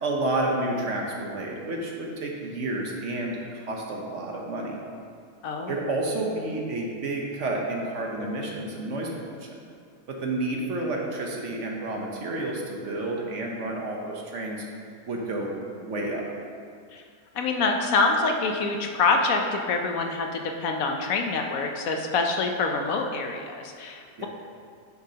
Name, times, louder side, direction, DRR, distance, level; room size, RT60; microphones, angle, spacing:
voice 1, 0.0-4.8 5.7-9.1 9.4-9.5 10.1-14.6 15.1-15.5 15.8-16.3 24.2-24.3, right 2 dB, 55° right, -1 dB, 1.1 m, -30 dB
voice 2, 5.4-5.8 16.9-17.0 17.3-24.3, left 3 dB, 70° left, 3 dB, 1.0 m, -26 dB
9.3 x 6.7 x 2.8 m, 2.2 s
omnidirectional pair, 1.6 m